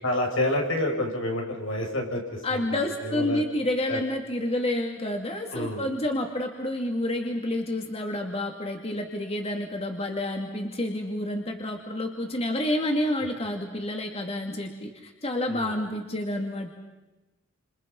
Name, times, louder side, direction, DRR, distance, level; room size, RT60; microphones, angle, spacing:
voice 1, 0.0-3.4 3.9-4.0 5.5-5.9 15.4-15.7, left 1 dB, 85° left, 1 dB, 6.6 m, -29 dB
voice 2, 2.4-16.7, left 1 dB, 30° left, 2 dB, 2.6 m, -29 dB
30.0 x 28.0 x 5.5 m, 1.1 s
head